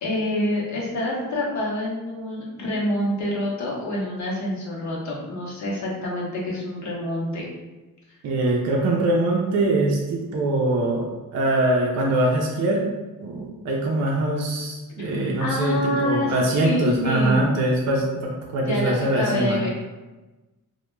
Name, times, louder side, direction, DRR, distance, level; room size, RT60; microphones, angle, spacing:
voice 1, 0.0-7.5 15.4-16.3 16.6-17.5 18.6-19.7, left 1 dB, 60° left, -4 dB, 0.7 m, -26 dB
voice 2, 8.2-11.1 11.3-12.9 13.2-19.6, right 2 dB, 55° right, -2 dB, 0.5 m, -23 dB
2.1 x 2.1 x 3.1 m, 1.1 s
cardioid pair, 130°, 32 cm